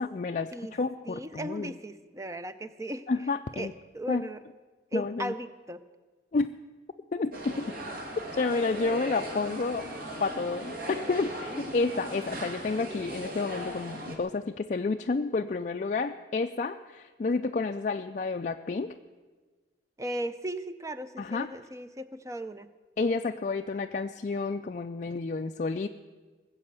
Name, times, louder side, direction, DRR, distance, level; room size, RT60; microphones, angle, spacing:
voice 1, 0.0-1.7 3.1-3.7 4.1-4.2 4.9-5.3 6.3-6.5 7.1-7.7 8.3-9.9 10.2-19.0 21.2-21.5 23.0-25.9, left 3 dB, 40° left, 5 dB, 0.4 m, -30 dB
voice 2, 1.1-3.1 3.5-4.4 4.9-5.8 20.0-22.7, right 1 dB, 15° right, 12 dB, 0.6 m, -37 dB
sound 1, 7.3-14.2, right 1 dB, 50° right, 2.3 m, -38 dB
19.5 x 7.8 x 8.1 m, 1.4 s
head